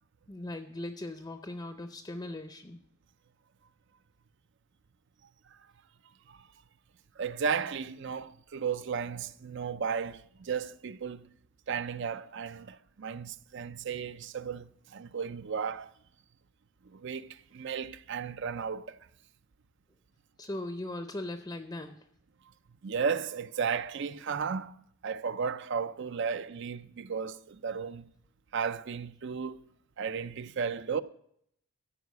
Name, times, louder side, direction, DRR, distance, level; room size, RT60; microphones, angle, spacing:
voice 1, 0.3-2.8 20.4-21.9, left 1 dB, 20° left, 0.6 m, -39 dB
voice 2, 7.2-11.3 11.7-15.9 16.9-19.0 22.8-28.1 28.5-29.6 30.0-31.0, right 6 dB, 55° right, 0.4 m, -34 dB
14.0 x 4.8 x 8.2 m
head